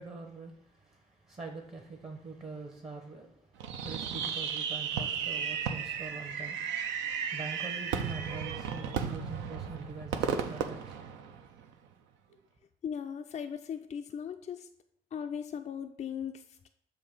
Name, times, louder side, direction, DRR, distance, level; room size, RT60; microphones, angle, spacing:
voice 1, 0.0-6.6 7.3-11.1 12.3-12.4, right 3 dB, 30° right, 3 dB, 0.9 m, -44 dB
Fireworks, 3.6-11.7, right 7 dB, 65° right, 0.5 m, -34 dB
voice 2, 12.8-14.7 15.1-16.7, left 8 dB, 35° left, 6 dB, 0.4 m, -38 dB
7.0 x 2.7 x 5.2 m, 0.72 s
figure-of-eight pair, 45°, 20 cm